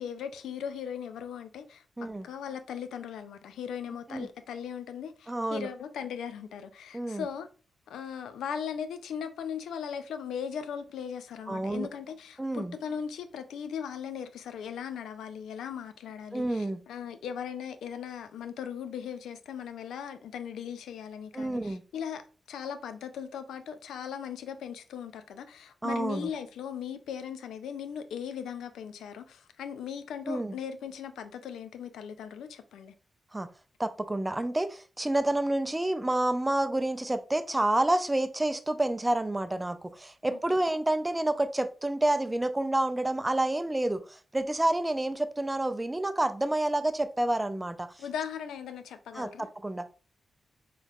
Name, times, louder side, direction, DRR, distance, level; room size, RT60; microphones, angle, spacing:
voice 1, 0.0-1.8 2.2-7.5 7.9-22.2 22.5-32.9 40.3-40.4 48.0-49.5, left 8 dB, 90° left, 0.4 m, -38 dB
voice 2, 5.3-5.7 6.9-7.2 11.5-11.9 12.4-12.8 16.3-16.8 21.3-21.8 25.8-26.3 30.3-30.5 33.3-33.5 33.8-47.9 49.1-49.9, right 1 dB, 15° right, 0.4 m, -29 dB
3.9 x 3.1 x 2.3 m
cardioid pair, 60°, 0 cm